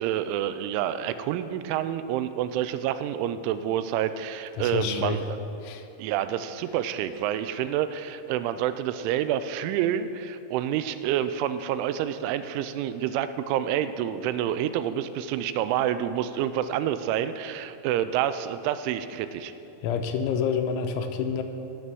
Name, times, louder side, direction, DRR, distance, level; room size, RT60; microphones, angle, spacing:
voice 1, 0.0-5.2 6.0-19.5, right 10 dB, 90° right, 12 dB, 3.0 m, -28 dB
voice 2, 4.6-5.2 5.6-5.9 19.8-21.4, left 6 dB, 85° left, 6 dB, 3.1 m, -28 dB
16.0 x 6.7 x 6.2 m, 2.9 s
omnidirectional pair, 5.4 m